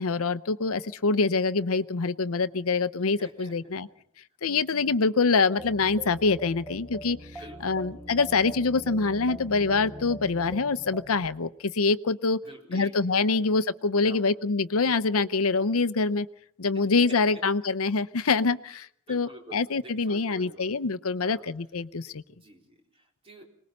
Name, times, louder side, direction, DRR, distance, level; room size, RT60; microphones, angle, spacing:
voice 1, 0.0-3.9 4.4-12.4 12.7-16.3 16.6-22.2, left 4 dB, 75° left, 13 dB, 0.7 m, -25 dB
voice 2, 3.2-3.8 7.4-7.9 12.4-12.9 13.3-13.5 14.0-14.3 16.7-17.4 19.1-20.7 21.2-21.5 22.3-23.4, right 1 dB, 25° right, 0 dB, 4.1 m, -47 dB
sound 1, 5.6-11.3, equal, 5° right, 1.5 m, -42 dB
25.5 x 20.0 x 5.4 m, 0.67 s
head